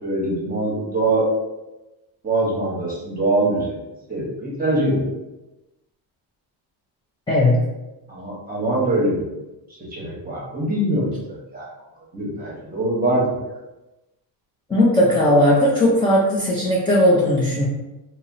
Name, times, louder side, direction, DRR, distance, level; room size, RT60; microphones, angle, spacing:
voice 1, 0.0-1.3 2.2-3.8 4.1-5.0 8.1-9.3 9.7-11.1 11.5-11.7 12.1-13.3, right 2 dB, 20° right, -4 dB, 0.8 m, -23 dB
voice 2, 7.3-7.6 14.7-17.6, left 1 dB, 15° left, -6 dB, 0.3 m, -17 dB
2.8 x 2.0 x 2.5 m, 1.0 s
cardioid pair, 120°, 44 cm